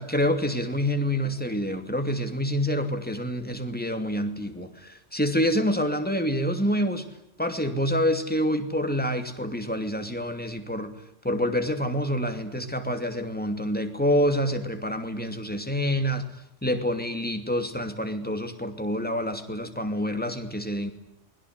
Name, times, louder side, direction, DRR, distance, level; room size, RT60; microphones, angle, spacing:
voice 1, 0.0-7.1 7.4-10.9 11.2-16.2 16.6-20.9, equal, 5° left, 6 dB, 2.7 m, -27 dB
28.5 x 21.5 x 9.6 m, 0.77 s
omnidirectional pair, 1.2 m